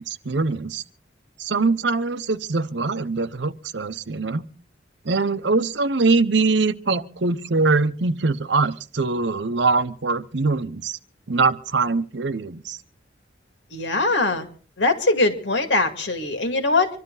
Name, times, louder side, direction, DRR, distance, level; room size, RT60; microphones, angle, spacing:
voice 1, 0.1-0.8 1.4-4.4 5.0-11.0 11.3-12.8, right 3 dB, 75° right, 0.8 m, -23 dB
voice 2, 13.7-14.5 14.8-17.0, left 2 dB, 80° left, 2.4 m, -21 dB
26.0 x 12.5 x 4.0 m
head